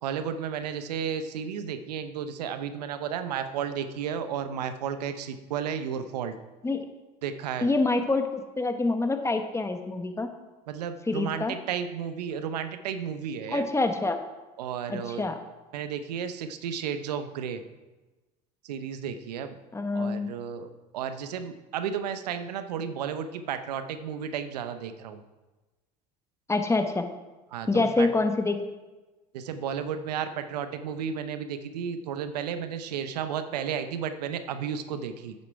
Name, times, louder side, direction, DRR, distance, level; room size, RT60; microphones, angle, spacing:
voice 1, 0.0-6.3 7.2-7.7 10.7-13.6 14.6-15.2 15.7-17.6 18.6-19.6 19.9-25.2 27.5-28.1 29.3-35.3, right 8 dB, 90° right, 10 dB, 0.7 m, -33 dB
voice 2, 7.6-10.3 11.1-11.5 13.5-14.2 14.9-15.4 19.7-20.3 26.5-27.1 27.7-28.6, left 3 dB, 15° left, 6 dB, 1.2 m, -26 dB
9.6 x 7.0 x 4.6 m, 1.2 s
hypercardioid pair, 75°, 20 cm